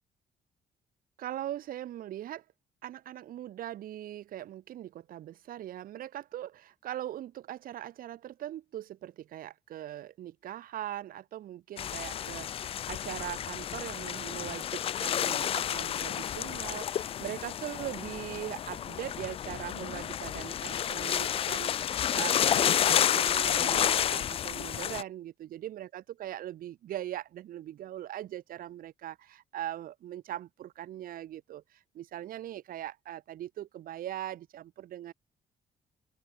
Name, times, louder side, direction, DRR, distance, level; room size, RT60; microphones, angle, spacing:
voice 1, 1.2-2.4 2.8-35.1, right 12 dB, 75° right, 4.8 m, -41 dB
sound 1, 11.8-25.0, left 10 dB, 40° left, 0.3 m, -30 dB
open air
cardioid pair, 150°, 15 cm